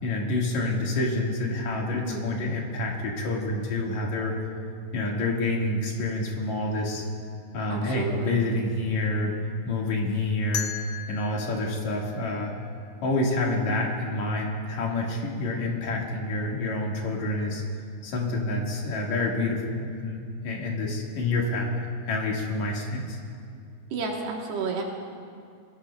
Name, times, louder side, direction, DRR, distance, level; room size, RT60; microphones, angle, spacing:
voice 1, 0.0-4.4 4.9-7.1 7.5-9.3 9.7-10.7 11.1-12.5 13.0-17.6 18.0-20.2 20.4-23.2, left 2 dB, 55° left, -2 dB, 2.5 m, -28 dB
voice 2, 7.7-8.4 23.9-24.8, right 4 dB, 75° right, -1 dB, 3.3 m, -31 dB
sound 1, 10.5-13.4, left 8 dB, 80° left, 2.7 m, -38 dB
23.5 x 17.0 x 2.3 m, 2.4 s
omnidirectional pair, 4.9 m